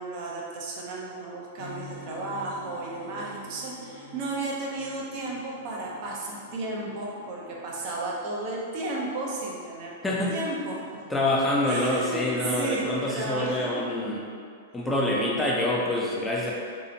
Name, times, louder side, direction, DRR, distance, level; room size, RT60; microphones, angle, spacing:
voice 1, 0.0-9.9 10.3-11.0 11.7-14.3 16.4-16.5, right 2 dB, 50° right, -3 dB, 0.5 m, -33 dB
sound 1, 1.6-8.1, left 1 dB, 60° left, 0.7 m, -47 dB
voice 2, 10.0-10.4 11.1-14.2 14.7-16.5, left 1 dB, 10° left, -4 dB, 0.4 m, -26 dB
2.7 x 2.0 x 2.6 m, 2.1 s
hypercardioid pair, 120°, 0 cm